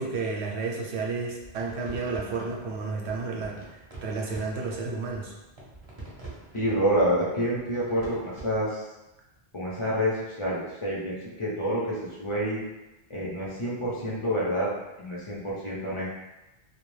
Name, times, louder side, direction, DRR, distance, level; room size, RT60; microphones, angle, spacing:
voice 1, 0.0-5.3, right 4 dB, 85° right, -1 dB, 0.8 m, -32 dB
sound 1, 1.1-8.6, right 2 dB, 30° right, 0.6 m, -46 dB
voice 2, 6.5-8.9 9.5-12.6 13.1-14.7 15.0-16.1, equal, 35° left, -6 dB, 0.5 m, -28 dB
2.3 x 2.1 x 3.1 m, 1.0 s
omnidirectional pair, 1.1 m